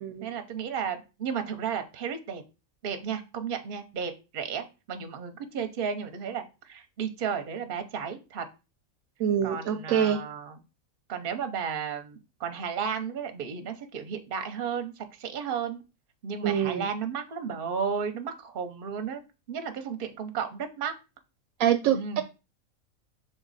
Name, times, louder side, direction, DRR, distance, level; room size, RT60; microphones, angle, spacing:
voice 1, 0.2-2.4 2.8-8.5 9.4-10.6 11.1-15.8 16.2-19.2 19.5-20.9 21.9-22.2, right 7 dB, 45° right, 7 dB, 0.8 m, -33 dB
voice 2, 9.2-10.2 16.4-16.9 21.6-22.2, right 9 dB, 80° right, 6 dB, 1.0 m, -25 dB
6.0 x 3.9 x 4.0 m, 0.30 s
omnidirectional pair, 1.4 m